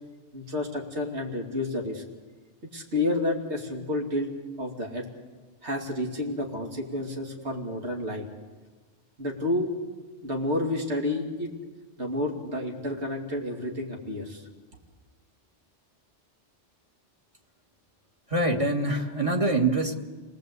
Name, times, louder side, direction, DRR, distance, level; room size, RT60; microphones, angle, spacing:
voice 1, 0.3-2.0 2.6-4.3 4.6-5.1 5.6-8.3 9.2-9.7 10.2-11.5 12.0-14.5, left 2 dB, 70° right, 1 dB, 3.1 m, -30 dB
voice 2, 18.3-19.9, right 2 dB, 30° right, 2 dB, 2.1 m, -24 dB
30.0 x 19.0 x 8.3 m, 1.3 s
omnidirectional pair, 1.2 m